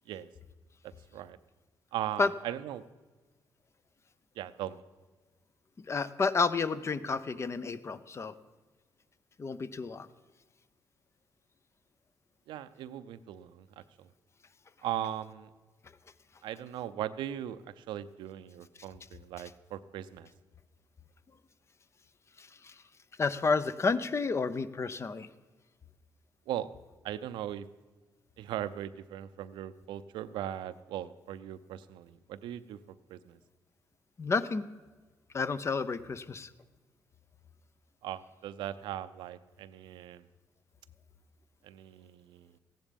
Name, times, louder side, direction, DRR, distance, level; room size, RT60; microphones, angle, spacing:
voice 1, 0.8-1.4 1.9-2.8 4.4-4.8 12.5-14.1 14.8-15.5 16.4-20.3 26.5-26.7 27.0-27.7 28.4-33.4 38.0-40.3 41.6-42.5, right 11 dB, 85° right, 14 dB, 0.6 m, -39 dB
voice 2, 5.8-8.3 9.4-10.1 22.4-22.7 23.2-25.3 34.2-34.7 35.3-36.5, left 4 dB, 35° left, 14 dB, 0.7 m, -30 dB
15.0 x 10.5 x 5.3 m, 1.3 s
cardioid pair, 75°, 8 cm